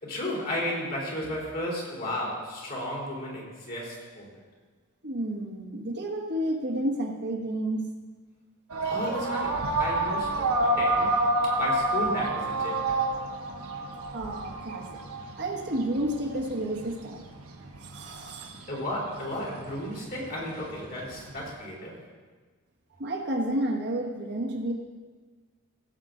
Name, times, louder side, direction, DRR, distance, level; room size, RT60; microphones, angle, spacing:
voice 1, 0.0-4.3 8.8-10.5 10.8-11.2 11.4-12.8 18.7-22.0, left 1 dB, 45° left, -4 dB, 3.6 m, -33 dB
voice 2, 5.0-7.8 14.1-14.9 15.4-17.2 17.8-18.7 23.0-24.7, right 1 dB, 50° right, 1 dB, 1.3 m, -31 dB
sound 1, 8.7-21.5, right 2 dB, 80° right, 1.2 m, -29 dB
16.5 x 8.1 x 3.8 m, 1.4 s
head